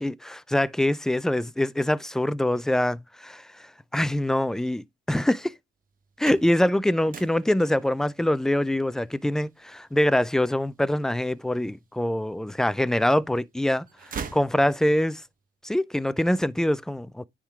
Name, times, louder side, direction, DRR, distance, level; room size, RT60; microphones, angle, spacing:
voice 1, 0.0-3.4 3.9-5.5 6.2-13.8 14.3-15.2 15.6-17.3, left 1 dB, 5° left, 0.4 m, -24 dB
sound 1, 5.9-11.9 12.4-13.3 13.6-15.2, right 6 dB, 45° right, 1.2 m, -42 dB
9.8 x 3.7 x 3.5 m
cardioid pair, 90°, 20 cm